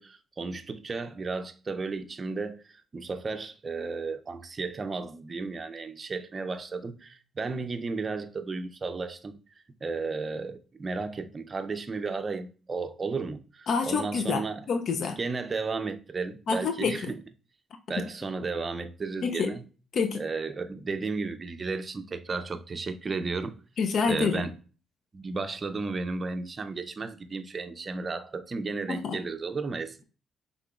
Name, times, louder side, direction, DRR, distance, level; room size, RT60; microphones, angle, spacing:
voice 1, 0.0-9.3 9.8-14.6 15.0-17.2 17.9-19.6 20.1-23.5 24.1-24.5 25.1-30.0, right 4 dB, 35° right, 0.5 m, -34 dB
voice 2, 13.7-14.4 14.7-15.2 16.5-17.0 19.2-19.5 19.9-20.2 23.8-24.4 28.9-29.2, left 5 dB, 60° left, 0.4 m, -27 dB
5.6 x 3.7 x 2.4 m
cardioid pair, 90°, 0 cm